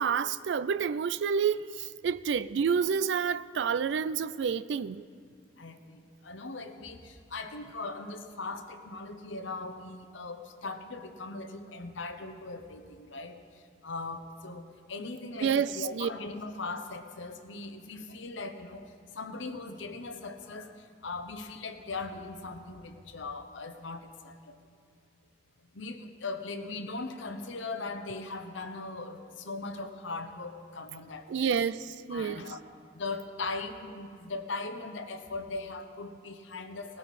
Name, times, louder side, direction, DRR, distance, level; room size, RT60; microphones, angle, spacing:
voice 1, 0.0-5.0 15.4-16.1 31.3-32.5, right 6 dB, 70° right, 0.3 m, -29 dB
voice 2, 5.6-13.4 13.8-14.6 14.9-18.9 19.1-20.7 21.0-24.6 25.7-31.6 32.1-32.6 32.9-37.0, left 3 dB, 80° left, 0.9 m, -39 dB
19.0 x 12.0 x 4.2 m
head